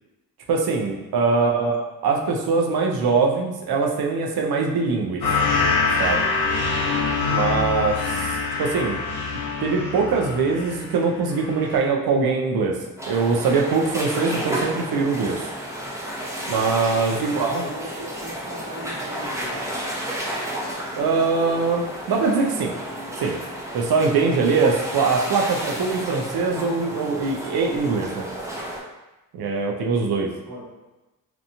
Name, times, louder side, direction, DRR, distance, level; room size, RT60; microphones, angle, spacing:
voice 1, 0.5-1.7 2.0-5.2 6.0-6.3 7.3-8.3 8.6-9.0 9.6-12.7 13.1-15.4 16.5-17.7 20.9-22.7 23.2-23.4 23.7-28.3 29.3-30.3, right 4 dB, 85° right, 0 dB, 0.5 m, -22 dB
voice 2, 1.3-1.8 17.0-19.9 30.5-30.7, equal, 65° right, -10 dB, 0.9 m, -38 dB
sound 1, 5.2-11.0 11.3-11.8, left 4 dB, 85° left, 0.7 m, -24 dB
sound 2, 13.0-28.8, right 1 dB, 10° right, 0.6 m, -32 dB
2.9 x 2.2 x 2.6 m, 1.0 s
cardioid pair, 55°, 36 cm